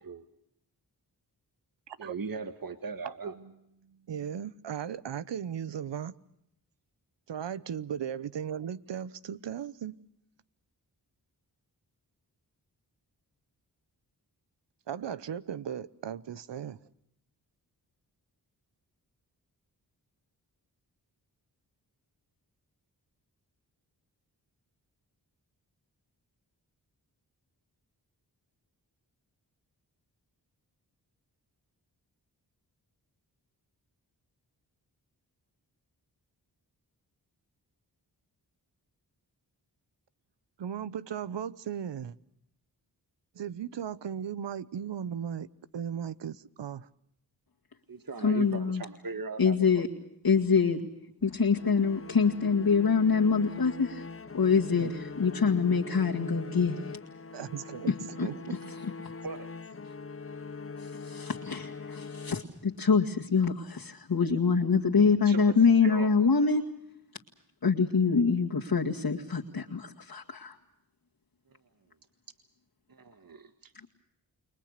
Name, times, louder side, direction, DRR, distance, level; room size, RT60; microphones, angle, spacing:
voice 1, 2.0-3.3 47.9-49.8 54.8-54.9 55.2-55.3 59.2-59.5 65.2-65.5 65.8-66.1 72.9-73.7, right 4 dB, 55° right, 1.6 m, -39 dB
voice 2, 3.0-3.5 3.9-6.1 7.3-10.0 14.9-16.8 40.6-42.1 43.3-45.5 45.7-46.9 57.3-57.9 58.2-58.6, right 8 dB, 90° right, 0.9 m, -37 dB
voice 3, 48.2-48.8 49.4-49.9 50.2-50.9 51.2-54.1 54.3-57.0 57.9-58.9 60.8-66.7 67.6-70.6, left 5 dB, 60° left, 2.2 m, -25 dB
sound 1, 51.2-55.3, right 4 dB, 30° right, 3.9 m, -60 dB
sound 2, 51.5-63.0, left 4 dB, 35° left, 0.9 m, -43 dB
29.5 x 21.0 x 6.6 m
cardioid pair, 45°, 41 cm